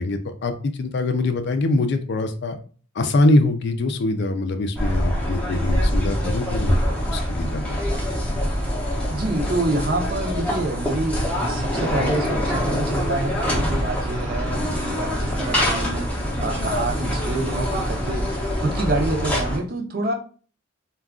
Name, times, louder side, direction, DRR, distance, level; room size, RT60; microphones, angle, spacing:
voice 1, 0.0-2.6 3.0-6.8 7.1-7.8, left 2 dB, 55° left, 0.4 m, -23 dB
sound 1, 4.8-19.6, equal, 5° left, 0.6 m, -24 dB
voice 2, 9.1-20.1, right 2 dB, 45° right, 0.5 m, -27 dB
2.3 x 2.3 x 3.5 m
head